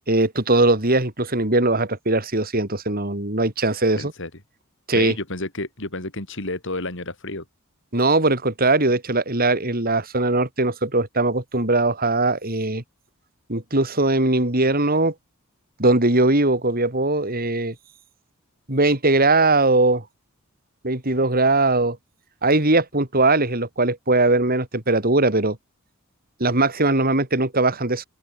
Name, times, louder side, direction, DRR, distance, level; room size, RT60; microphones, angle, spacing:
voice 1, 0.1-4.1 4.9-5.1 7.9-12.8 13.5-15.1 15.8-17.7 18.7-20.0 20.8-22.0 22.4-25.6 26.4-28.0, right 2 dB, 45° right, 4.2 m, -20 dB
voice 2, 4.0-4.3 4.9-7.4, left 2 dB, 60° left, 4.6 m, -30 dB
open air
head